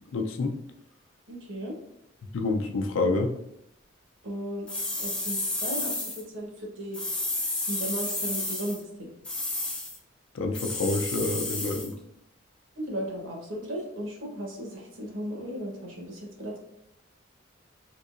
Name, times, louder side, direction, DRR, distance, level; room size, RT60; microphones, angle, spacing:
voice 1, 0.1-0.6 2.3-3.4 10.3-11.9, left 3 dB, 90° left, 4 dB, 0.4 m, -28 dB
voice 2, 1.3-1.7 4.2-4.7 5.0-7.0 7.5-9.1 12.8-16.6, equal, 80° right, -1 dB, 1.0 m, -36 dB
sound 1, 4.7-6.2 6.9-8.8 9.2-10.0 10.5-11.9, left 2 dB, 5° left, 0.4 m, -31 dB
3.6 x 2.8 x 2.5 m, 0.80 s
head